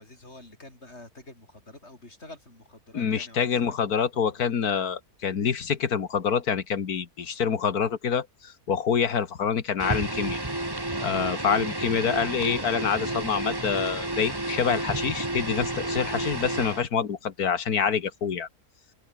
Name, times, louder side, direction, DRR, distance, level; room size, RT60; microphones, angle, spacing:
voice 1, 0.0-4.0 4.4-4.5, left 2 dB, 45° left, 5.6 m, -48 dB
voice 2, 2.9-10.4 11.0-18.5, left 7 dB, 75° left, 2.1 m, -26 dB
sound 1, 9.8-16.9, right 1 dB, 15° right, 2.2 m, -31 dB
open air
omnidirectional pair, 1.6 m